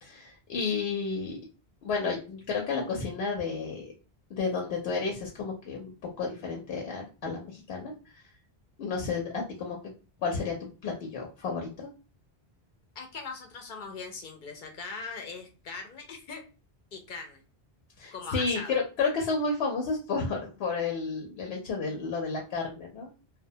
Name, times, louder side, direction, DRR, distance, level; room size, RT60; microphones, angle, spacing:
voice 1, 0.0-1.4 1.8-3.8 4.3-7.9 8.8-9.8 10.2-10.6 10.8-11.9 18.0-23.1, left 4 dB, 90° left, 0 dB, 0.9 m, -31 dB
voice 2, 13.0-16.4 16.9-17.4 18.1-18.8, left 4 dB, 60° left, 3 dB, 0.6 m, -40 dB
2.3 x 2.1 x 2.6 m, 0.34 s
omnidirectional pair, 1.1 m